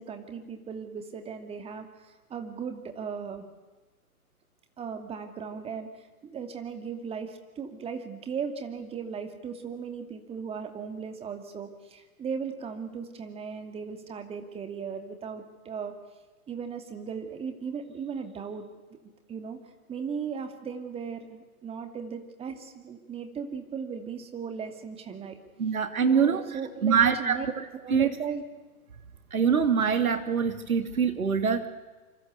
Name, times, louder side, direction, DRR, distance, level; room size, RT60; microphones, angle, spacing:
voice 1, 0.0-3.4 4.8-16.0 16.5-18.7 19.3-19.6 19.9-25.4 26.0-27.5 27.8-28.4, right 6 dB, 15° right, 6 dB, 2.5 m, -37 dB
voice 2, 25.6-26.4 26.8-28.1 29.3-31.7, right 6 dB, 70° right, 8 dB, 3.0 m, -24 dB
27.0 x 25.5 x 8.3 m, 1.3 s
figure-of-eight pair, 130°, 44 cm